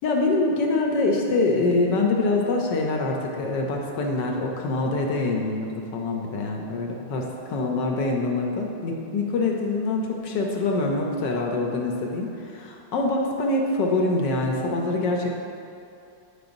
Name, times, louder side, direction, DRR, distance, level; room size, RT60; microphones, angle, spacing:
voice 1, 0.0-15.3, left 2 dB, 70° left, 1 dB, 1.2 m, -25 dB
9.6 x 6.8 x 2.6 m, 2.6 s
omnidirectional pair, 2.4 m